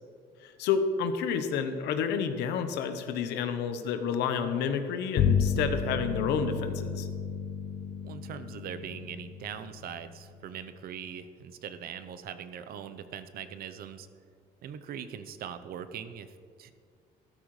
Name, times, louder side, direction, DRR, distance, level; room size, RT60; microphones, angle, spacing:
voice 1, 0.4-7.1, left 6 dB, 85° left, 8 dB, 1.0 m, -30 dB
Bowed string instrument, 5.2-10.8, left 6 dB, 65° left, 1.0 m, -32 dB
voice 2, 8.0-14.1 14.6-16.7, right 8 dB, 65° right, 11 dB, 0.7 m, -41 dB
13.0 x 13.0 x 3.2 m, 2.2 s
cardioid pair, 110°, 17 cm